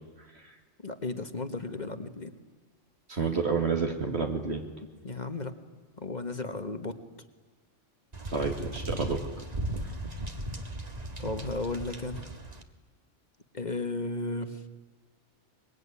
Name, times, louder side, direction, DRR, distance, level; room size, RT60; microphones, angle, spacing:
voice 1, 0.8-2.3 5.0-5.5 6.0-6.9 11.2-12.3 13.5-14.6, left 3 dB, 35° left, 9 dB, 1.6 m, -34 dB
voice 2, 3.1-4.6 8.3-9.3 9.8-9.9, right 4 dB, 60° right, 3 dB, 2.5 m, -30 dB
sound 1, 8.1-12.6, right 1 dB, 35° right, 1.8 m, -37 dB
23.5 x 22.5 x 9.9 m, 1.4 s
omnidirectional pair, 1.3 m